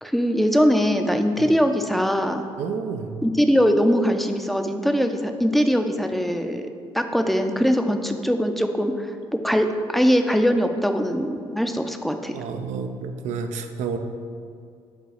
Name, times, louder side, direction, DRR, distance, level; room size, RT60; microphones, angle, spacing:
voice 1, 0.0-2.4 3.2-6.7 6.9-12.4, equal, ahead, 6 dB, 0.5 m, -21 dB
voice 2, 2.6-3.1 12.3-14.0, right 5 dB, 65° right, 6 dB, 0.5 m, -30 dB
5.1 x 3.8 x 4.9 m, 2.3 s
hypercardioid pair, 50°, 13 cm